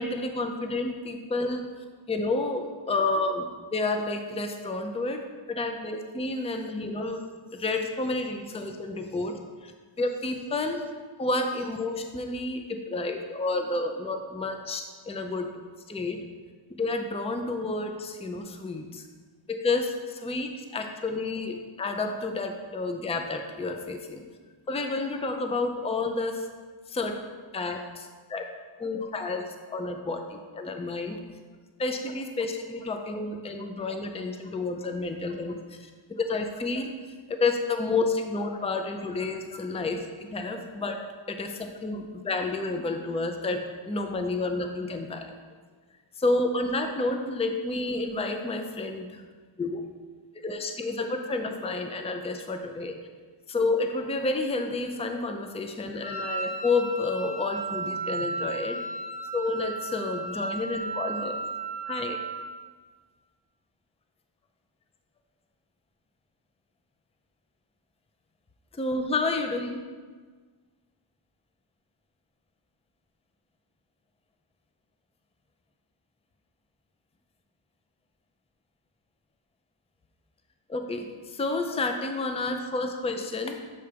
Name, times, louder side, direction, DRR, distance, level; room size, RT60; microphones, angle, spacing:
voice 1, 0.0-1.7 2.1-5.2 5.5-7.2 7.5-9.3 9.6-9.7 10.0-10.8 11.2-15.5 15.9-16.2 16.8-19.0 19.5-24.2 24.7-26.5 26.9-27.1 27.5-28.5 28.8-31.2 31.8-36.9 37.4-41.0 41.3-45.3 46.2-49.2 49.6-49.8 50.4-52.9 53.5-58.8 59.3-61.4 61.9-62.2 68.7-69.8 80.7-83.6, left 3 dB, 15° left, 5 dB, 0.4 m, -30 dB
Wind instrument woodwind instrument, 56.0-62.6, right 3 dB, 55° left, 1.2 m, -34 dB
6.8 x 3.4 x 5.1 m, 1.5 s
wide cardioid pair, 90°, 49 cm